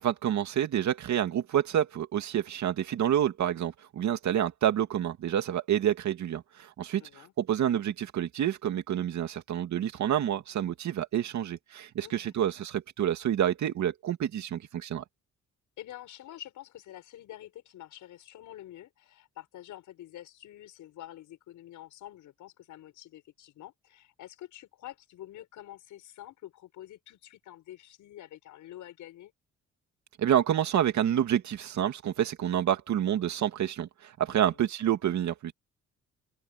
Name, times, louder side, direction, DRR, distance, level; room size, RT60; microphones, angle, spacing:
voice 1, 0.0-15.0 30.2-35.5, right 10 dB, 70° right, 2.4 m, -28 dB
voice 2, 6.9-7.3 12.0-12.3 15.8-29.3 34.3-34.6, left 13 dB, 80° left, 6.0 m, -47 dB
open air
cardioid pair, 90°, 30 cm